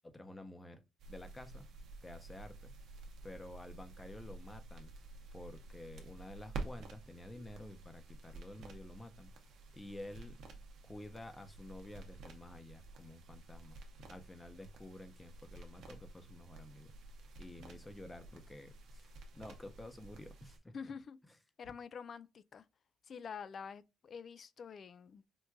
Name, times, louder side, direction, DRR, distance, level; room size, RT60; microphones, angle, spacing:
voice 1, 0.1-0.8 1.1-1.7 2.0-2.7 3.2-4.9 5.3-9.3 9.7-10.4 10.8-13.8 14.1-16.9 17.4-20.7, left 1 dB, 15° left, 0.7 m, -51 dB
sound 1, 1.0-20.6, right 3 dB, 70° right, 0.7 m, -51 dB
voice 2, 20.7-21.2 21.6-22.6 23.1-25.3, left 6 dB, 45° left, 0.3 m, -47 dB
4.5 x 2.5 x 2.2 m
cardioid pair, 100°, 0 cm